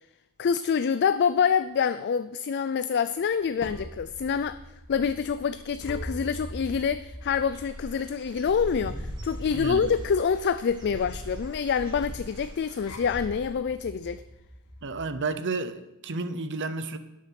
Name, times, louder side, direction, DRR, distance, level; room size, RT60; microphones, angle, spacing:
voice 1, 0.4-4.6 4.9-14.2, left 6 dB, 50° left, 0.4 m, -26 dB
sound 1, 3.2-15.1, equal, 75° left, 1.6 m, -44 dB
Dog / Bird, 7.2-13.5, equal, 20° right, 3.1 m, -40 dB
voice 2, 9.5-9.9 14.8-17.0, right 3 dB, 55° right, 0.8 m, -31 dB
12.0 x 8.4 x 5.9 m
head